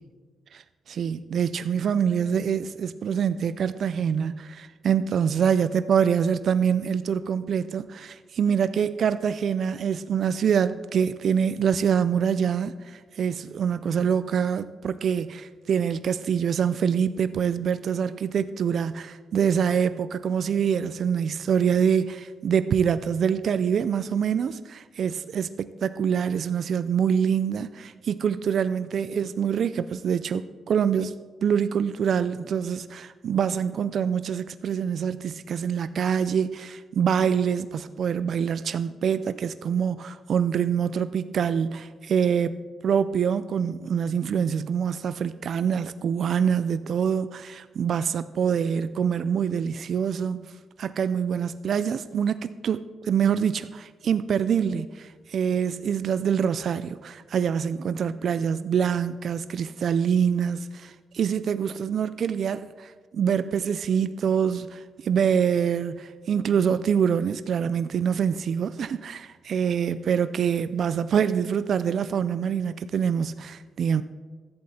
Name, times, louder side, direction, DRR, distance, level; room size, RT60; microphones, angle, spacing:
voice 1, 0.9-31.1 31.4-50.5 50.8-74.0, right 7 dB, 50° right, 0.4 m, -25 dB
15.5 x 11.5 x 4.2 m
wide cardioid pair, 180°, 0 cm